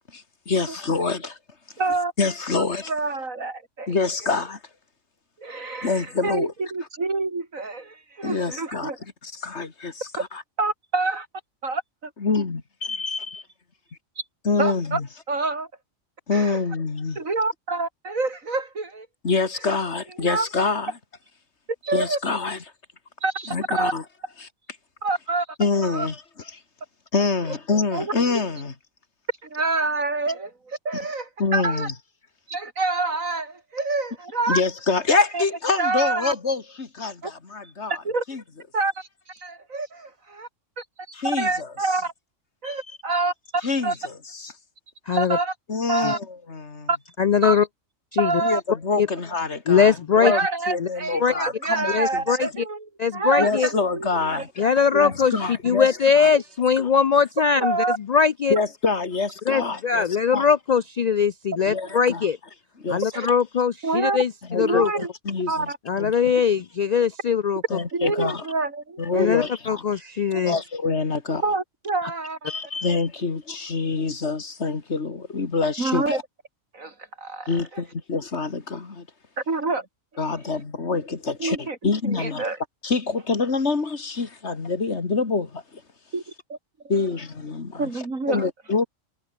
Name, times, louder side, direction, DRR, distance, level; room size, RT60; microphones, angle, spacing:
voice 1, 0.1-1.4 2.2-2.9 3.9-4.6 5.8-6.5 8.2-8.9 9.2-10.4 12.2-13.4 14.4-15.1 16.3-17.2 19.2-20.9 21.9-22.6 23.5-24.0 24.4-24.5 25.6-26.2 27.1-28.8 31.4-31.9 34.5-38.0 38.3-38.4 41.1-41.7 42.6-42.8 43.6-44.5 45.7-46.9 48.4-50.4 50.7-52.2 53.4-54.6 54.9-56.3 56.8-56.9 57.6-57.7 58.5-60.1 60.3-60.4 61.7-62.3 62.8-63.0 64.5-66.3 67.7-68.5 69.0-69.8 70.4-71.4 72.5-76.2 77.5-79.1 80.2-82.5 82.8-85.8 86.9-87.9 88.3-88.9, left 4 dB, 55° left, 2.4 m, -26 dB
voice 2, 1.8-2.1 2.6-4.0 5.4-9.0 10.6-11.3 11.6-11.8 14.6-15.0 15.3-15.7 16.3-16.6 17.2-19.1 20.2-20.5 21.8-22.2 23.2-23.9 25.0-25.5 25.8-26.1 27.9-28.1 29.4-31.9 32.5-34.6 35.3-35.4 35.8-36.3 37.2-37.3 38.0-38.2 38.7-40.5 40.8-40.9 41.2-42.1 42.6-44.0 45.1-45.5 45.9-46.2 46.9-47.0 47.4-47.6 48.2-48.6 50.2-54.7 55.0-55.1 55.4-55.8 56.3-56.4 57.6-58.0 61.9-62.0 63.1-63.3 63.8-64.2 64.6-65.1 65.5-65.8 67.9-69.3 70.3-70.4 71.3-72.5 75.8-76.2 76.7-77.8 79.4-79.9 81.4-81.8 82.0-82.6 86.1-86.2 86.5-86.6 86.8-87.0 87.8-88.5, right 3 dB, 75° right, 4.0 m, -27 dB
voice 3, 45.1-45.4 46.0-46.1 47.2-47.6 48.1-48.3 49.0-49.1 49.7-50.3 50.8-50.9 51.2-51.3 51.9-52.5 53.0-53.7 54.6-57.8 58.1-58.6 59.5-62.4 62.9-64.9 65.9-67.6 69.1-70.6, left 6 dB, 75° left, 0.3 m, -21 dB
omnidirectional pair, 1.4 m